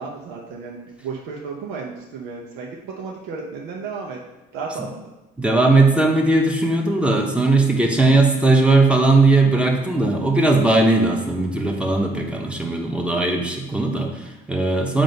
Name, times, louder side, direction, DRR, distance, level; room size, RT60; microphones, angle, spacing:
voice 1, 0.0-4.2 4.5-4.9 14.9-15.0, right 4 dB, 90° right, -2 dB, 0.8 m, -33 dB
voice 2, 5.4-15.0, right 2 dB, 5° right, 1 dB, 0.9 m, -18 dB
7.5 x 2.6 x 5.3 m, 1.0 s
cardioid pair, 115°, 19 cm